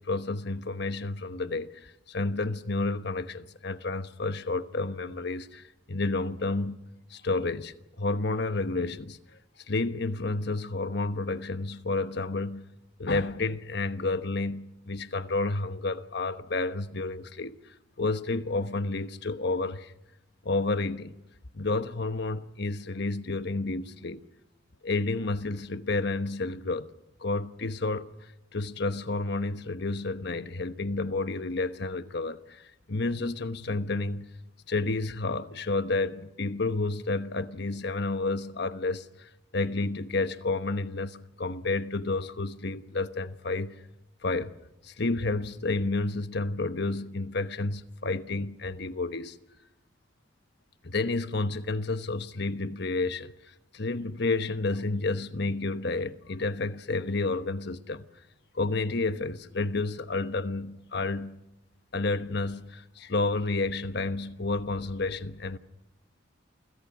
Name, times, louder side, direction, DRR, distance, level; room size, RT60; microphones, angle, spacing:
voice 1, 0.0-6.8 7.1-9.2 9.7-12.7 13.0-17.6 18.0-19.9 20.4-21.2 21.5-24.2 24.8-26.9 27.2-28.1 28.5-32.6 32.9-34.3 34.7-43.8 44.2-44.6 44.8-49.4 50.8-53.3 53.7-58.0 58.5-61.4 61.9-65.6, left 3 dB, 60° left, 1.1 m, -30 dB
29.0 x 25.0 x 6.1 m
head